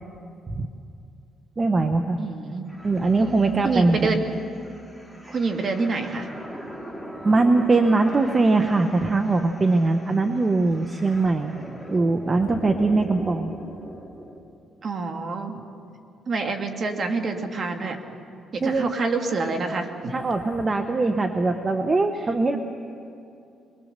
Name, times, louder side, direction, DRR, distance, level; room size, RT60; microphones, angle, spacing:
voice 1, 1.6-2.2 2.8-4.1 7.2-11.6 11.9-13.5 18.6-18.9 20.1-22.6, right 3 dB, 30° right, 6 dB, 1.1 m, -21 dB
voice 2, 2.2-2.7 3.6-4.2 5.3-6.3 14.8-15.6 16.3-18.0 18.5-20.1, right 4 dB, 50° right, 4 dB, 2.1 m, -27 dB
sound 1, 2.7-14.4, equal, 10° right, 3.0 m, -40 dB
22.0 x 22.0 x 6.7 m, 2.6 s
cardioid pair, 90°, 0 cm